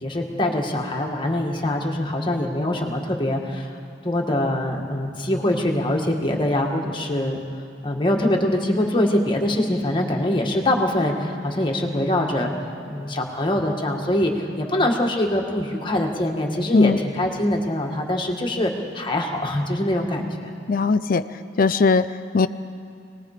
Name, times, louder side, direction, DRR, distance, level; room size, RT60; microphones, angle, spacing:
voice 1, 0.0-3.8 4.0-7.4 7.8-12.5 12.8-20.5, left 1 dB, 25° left, 1 dB, 1.8 m, -23 dB
voice 2, 20.7-21.2 21.6-22.5, left 4 dB, 45° left, 12 dB, 0.4 m, -19 dB
27.5 x 19.5 x 5.0 m, 2.4 s
head